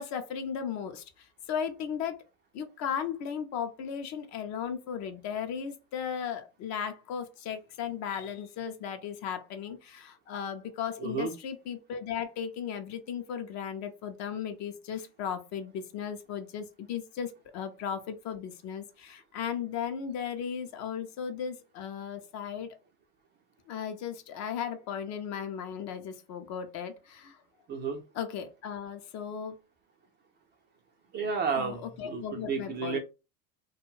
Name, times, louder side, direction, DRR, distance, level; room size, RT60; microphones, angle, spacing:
voice 1, 0.0-2.2 2.5-22.7 23.7-27.4 28.1-29.5 31.6-33.0, left 8 dB, 40° left, 7 dB, 0.5 m, -36 dB
voice 2, 11.0-11.3 27.7-28.0 31.1-33.0, right 5 dB, 25° right, 3 dB, 0.4 m, -32 dB
2.3 x 2.2 x 3.0 m, 0.29 s
hypercardioid pair, 95°, 47 cm